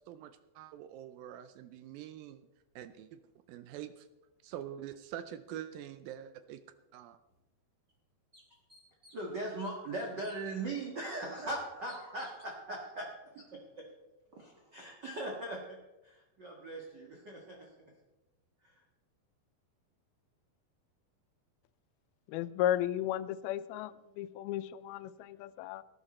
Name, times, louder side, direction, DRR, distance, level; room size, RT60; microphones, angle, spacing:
voice 1, 0.1-2.5 2.8-3.2 3.5-4.1 4.4-6.6 6.9-7.2, right 11 dB, 80° right, 11 dB, 2.3 m, -45 dB
sound 1, 7.3-7.4 7.9-8.0 8.3-9.3 9.6-10.4 11.0-11.2 11.9-12.5, equal, 20° right, 3.6 m, -58 dB
voice 2, 9.1-13.9 14.3-17.9 18.6-18.8, right 2 dB, 45° right, -1 dB, 1.4 m, -40 dB
voice 3, 22.3-25.8, left 12 dB, 80° left, 14 dB, 2.4 m, -34 dB
18.5 x 11.0 x 4.2 m, 1.0 s
omnidirectional pair, 4.5 m